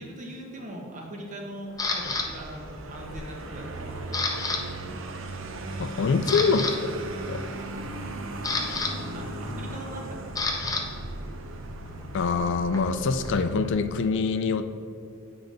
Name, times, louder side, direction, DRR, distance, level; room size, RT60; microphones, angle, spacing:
voice 1, 0.0-4.4 9.1-10.2 10.5-11.3, right 1 dB, 35° right, 0 dB, 1.2 m, -41 dB
Vehicle, 1.7-13.9, right 2 dB, 65° right, 0.7 m, -37 dB
Camera, 1.8-2.3 2.9-3.2 3.5-4.6 4.9-5.1 5.6-5.7 6.1-6.7 7.9-10.8 11.1-13.7, left 3 dB, 15° left, 0.7 m, -31 dB
voice 2, 5.8-6.7 7.3-7.4 12.1-14.8, left 4 dB, 60° left, 10 dB, 0.4 m, -25 dB
8.9 x 3.9 x 5.2 m, 2.4 s
head